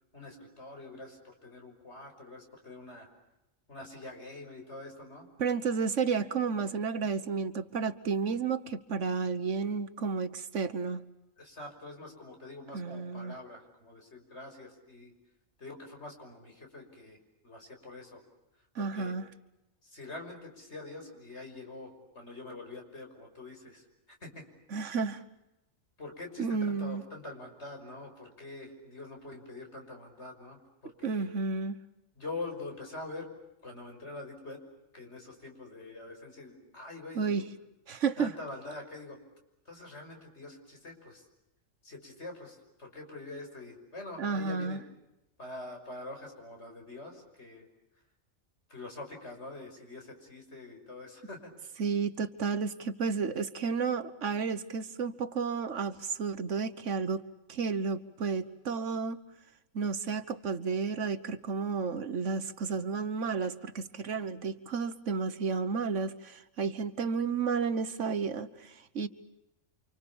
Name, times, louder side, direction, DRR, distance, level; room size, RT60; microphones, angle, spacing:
voice 1, 0.1-3.1 3.7-5.3 11.4-15.1 15.6-17.2 17.4-18.2 18.8-19.1 19.8-23.8 24.2-24.4 26.0-31.3 32.2-33.3 33.6-34.6 34.9-37.4 38.2-39.2 39.7-41.3 41.8-44.8 45.4-47.7 48.7-51.5, left 2 dB, 60° left, 3 dB, 6.3 m, -45 dB
voice 2, 5.4-11.0 12.7-13.3 18.7-19.2 24.7-25.2 26.4-27.0 31.0-31.8 37.1-37.4 37.9-38.3 44.2-44.8 51.8-57.2 57.5-59.2 59.7-69.1, right 5 dB, 70° right, 13 dB, 1.5 m, -32 dB
29.5 x 26.5 x 7.1 m, 0.92 s
omnidirectional pair, 1.3 m